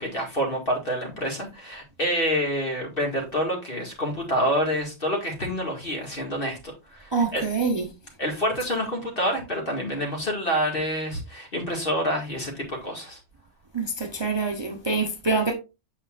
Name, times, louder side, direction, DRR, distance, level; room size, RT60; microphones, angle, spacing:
voice 1, 0.0-7.4 8.2-13.2, equal, 45° left, 2.4 m, -27 dB
voice 2, 7.1-7.8 13.7-15.5, right 4 dB, 25° right, 0.8 m, -25 dB
8.0 x 5.7 x 2.5 m
omnidirectional pair, 1.3 m